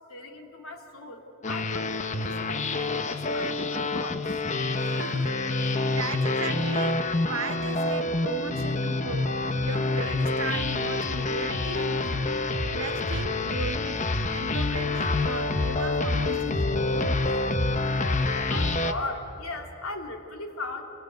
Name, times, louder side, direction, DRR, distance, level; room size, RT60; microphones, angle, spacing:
voice 1, 0.1-4.4 18.2-20.8, left 2 dB, 75° left, 3.0 m, -38 dB
sound 1, 1.4-18.9, left 2 dB, 35° left, 1.0 m, -27 dB
voice 2, 4.7-12.4 12.7-17.3, right 3 dB, 70° right, 1.3 m, -37 dB
27.5 x 22.5 x 9.3 m
head